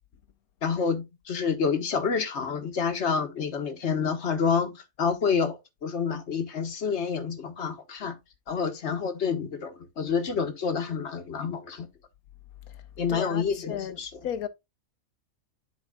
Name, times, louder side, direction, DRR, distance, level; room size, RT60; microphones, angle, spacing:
voice 1, 0.6-8.1 8.5-11.9 13.0-14.1, left 6 dB, 50° left, 1.3 m, -28 dB
voice 2, 13.1-14.5, left 9 dB, 80° left, 1.3 m, -35 dB
11.0 x 4.7 x 2.2 m
omnidirectional pair, 1.6 m